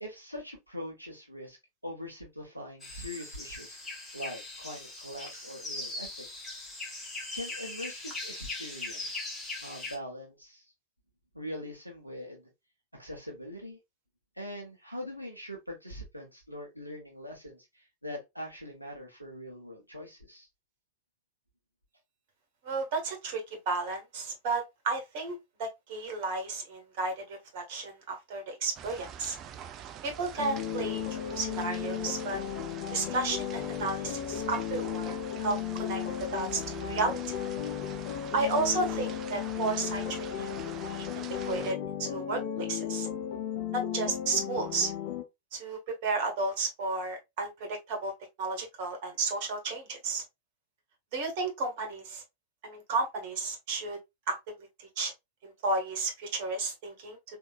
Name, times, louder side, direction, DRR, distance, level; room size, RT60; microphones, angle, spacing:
voice 1, 0.0-1.6 1.8-3.8 4.1-6.5 7.3-9.3 9.6-10.7 11.3-12.5 12.9-13.8 14.4-20.5, left 1 dB, 90° right, 0.9 m, -42 dB
sound 1, 2.8-10.0, left 2 dB, 15° left, 1.6 m, -40 dB
voice 2, 22.6-29.4 30.0-32.4 32.9-36.0 36.3-37.3 38.3-40.6 40.8-43.1 43.7-44.9 45.5-48.1 48.4-50.2 51.1-52.2 52.6-54.0 54.3-55.1 55.4-57.4, right 3 dB, 50° right, 1.3 m, -33 dB
sound 2, 28.8-41.7, right 9 dB, 35° right, 0.4 m, -45 dB
sound 3, 30.4-45.2, left 10 dB, 45° left, 0.7 m, -35 dB
3.8 x 2.7 x 2.3 m
figure-of-eight pair, 90°, 0 cm